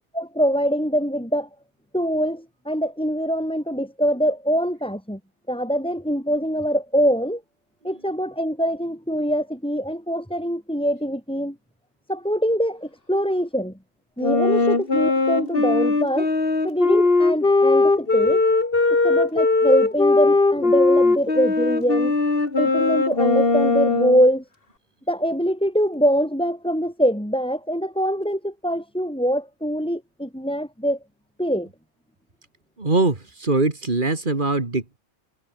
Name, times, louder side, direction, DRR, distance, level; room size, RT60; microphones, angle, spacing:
voice 1, 0.1-1.5 1.9-5.2 5.5-7.4 7.8-11.6 12.1-13.7 14.2-16.3 16.6-18.4 19.0-22.1 22.6-24.4 25.1-31.0 31.4-31.7, equal, 5° left, 3.8 m, -23 dB
Wind instrument woodwind instrument, 14.2-24.3, left 3 dB, 55° left, 2.8 m, -19 dB
voice 2, 32.8-35.0, right 3 dB, 45° right, 2.8 m, -22 dB
omnidirectional pair, 1.2 m